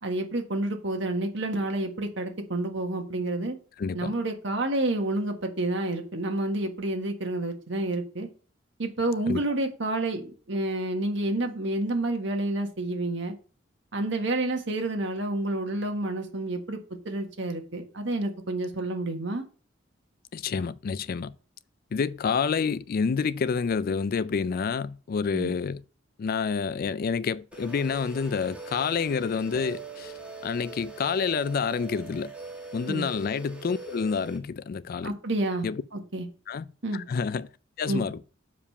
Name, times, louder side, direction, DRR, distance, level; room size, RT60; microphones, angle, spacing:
voice 1, 0.0-3.5 3.9-8.3 8.8-13.3 13.9-16.8 17.0-19.4 25.3-25.5 32.9-33.0 35.0-35.7 35.9-36.3 36.8-37.0 37.9-38.1, right 2 dB, 70° right, 1.5 m, -29 dB
voice 2, 3.8-4.1 9.3-9.4 20.3-21.3 21.9-25.8 26.2-30.1 30.4-32.3 32.7-35.2 35.6-35.8 36.5-36.7 36.9-37.5 37.8-38.2, left 5 dB, 50° left, 0.4 m, -28 dB
sound 1, 27.5-34.4, right 4 dB, 5° right, 1.5 m, -42 dB
6.9 x 5.0 x 5.5 m
head